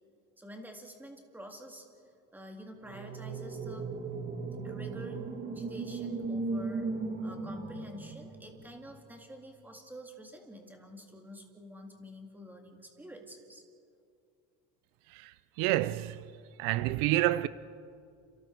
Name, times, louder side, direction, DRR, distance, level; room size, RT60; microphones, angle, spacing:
voice 1, 0.4-1.9 2.3-3.9 4.6-6.9 7.2-13.6, equal, 5° right, 2.2 m, -48 dB
sound 1, 2.8-9.0, right 3 dB, 25° right, 1.8 m, -37 dB
voice 2, 15.1-16.3 16.6-17.5, right 16 dB, 70° right, 0.7 m, -29 dB
29.5 x 29.5 x 4.6 m
cardioid pair, 170°, 34 cm